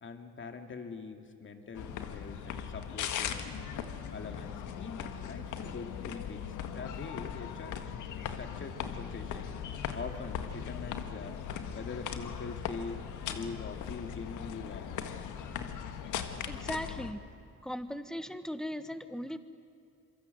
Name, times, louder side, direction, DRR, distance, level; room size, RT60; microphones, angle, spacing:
voice 1, 0.0-3.7 4.1-6.4 6.7-7.9 8.3-9.5 9.9-11.4 11.7-13.0 13.3-15.1, left 4 dB, 40° left, 5 dB, 2.6 m, -43 dB
sound 1, 1.7-17.1, left 8 dB, 85° left, 1.7 m, -39 dB
voice 2, 16.5-17.2 17.6-19.4, equal, ahead, 11 dB, 1.3 m, -38 dB
27.0 x 23.5 x 7.9 m, 2.5 s
cardioid pair, 90°, 30 cm